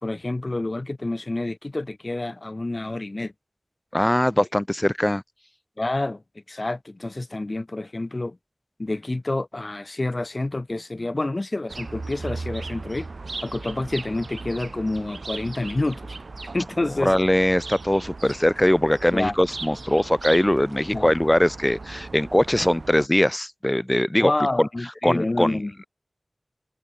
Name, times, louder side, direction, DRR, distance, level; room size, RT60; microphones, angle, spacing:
voice 1, 0.0-3.3 5.8-6.2 6.5-8.4 8.8-13.1 13.4-16.1 16.5-17.1 19.1-19.3 20.9-21.1 24.2-25.7, left 2 dB, 45° left, 2.9 m, -28 dB
voice 2, 3.9-5.2 17.0-24.3 24.6-24.7 25.0-25.9, left 1 dB, 15° left, 3.0 m, -21 dB
sound 1, 11.7-23.1, right 3 dB, 85° right, 5.5 m, -37 dB
wide cardioid pair, 65°, 0 cm